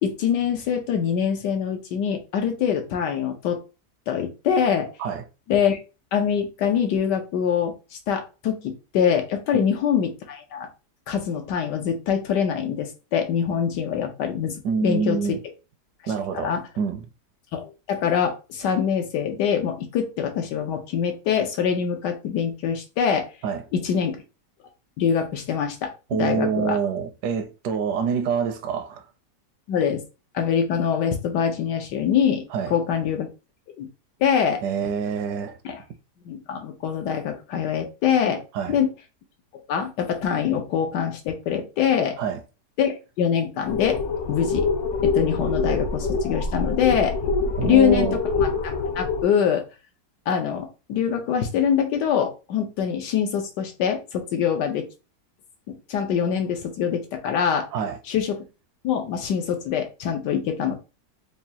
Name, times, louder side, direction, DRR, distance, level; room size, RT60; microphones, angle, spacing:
voice 1, 0.0-3.6 4.1-4.9 5.5-5.8 6.1-7.7 8.1-10.7 11.1-15.4 16.0-16.6 17.5-23.3 23.7-24.2 25.0-25.9 26.2-26.8 29.7-30.0 30.3-33.3 33.8-33.9 34.2-34.6 35.6-35.8 36.2-38.4 38.7-38.9 39.7-42.2 42.8-44.0 44.3-44.7 45.0-47.2 47.6-49.6 50.3-54.9 55.9-57.7 58.1-58.4 58.8-60.7, left 8 dB, 90° left, 1.4 m, -24 dB
voice 2, 14.6-15.4 16.1-17.1 23.4-23.7 26.1-29.0 32.5-32.7 34.6-35.6 38.5-38.8 42.2-42.4 47.6-48.2 57.7-58.0, right 6 dB, 75° right, 1.2 m, -26 dB
sound 1, 43.7-49.2, left 4 dB, 65° left, 0.7 m, -25 dB
5.0 x 2.3 x 2.8 m
omnidirectional pair, 1.8 m